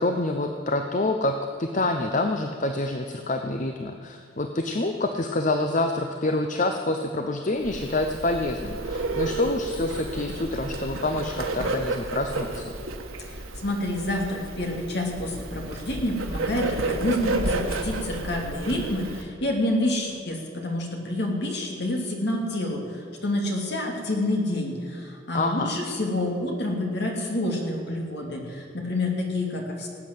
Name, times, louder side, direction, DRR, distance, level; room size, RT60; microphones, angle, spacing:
voice 1, 0.0-12.7 25.3-25.7, left 2 dB, 40° left, 6 dB, 0.7 m, -27 dB
Bird, 7.6-19.2, right 2 dB, 90° right, 1.6 m, -31 dB
voice 2, 13.2-29.9, left 1 dB, 55° left, 1 dB, 2.8 m, -28 dB
18.5 x 8.6 x 7.7 m, 2.5 s
head